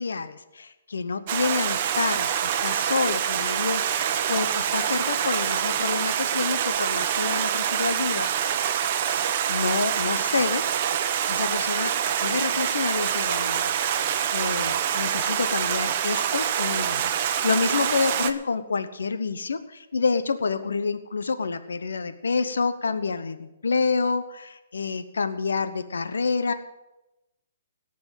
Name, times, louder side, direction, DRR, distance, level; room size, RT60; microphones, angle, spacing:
voice 1, 0.0-8.3 9.5-10.6 11.3-11.9 12.2-13.9 14.3-26.5, left 4 dB, 90° left, 10 dB, 1.0 m, -28 dB
Stream, 1.3-18.3, right 9 dB, 45° right, 1.1 m, -26 dB
18.0 x 6.1 x 8.9 m, 0.96 s
hypercardioid pair, 150°, 0 cm